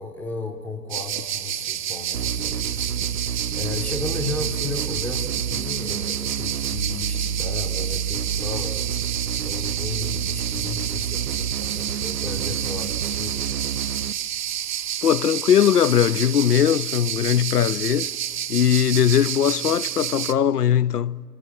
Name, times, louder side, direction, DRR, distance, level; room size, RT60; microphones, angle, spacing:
voice 1, 0.0-8.8 9.1-13.5, left 3 dB, 5° left, 0.7 m, -34 dB
sound 1, 0.9-20.3, right 10 dB, 30° right, 0.7 m, -30 dB
sound 2, 2.1-14.1, right 8 dB, 75° right, 0.7 m, -29 dB
voice 2, 15.0-18.1 18.5-21.2, left 9 dB, 75° left, 0.6 m, -20 dB
28.0 x 27.0 x 7.4 m
figure-of-eight pair, 125°, 48 cm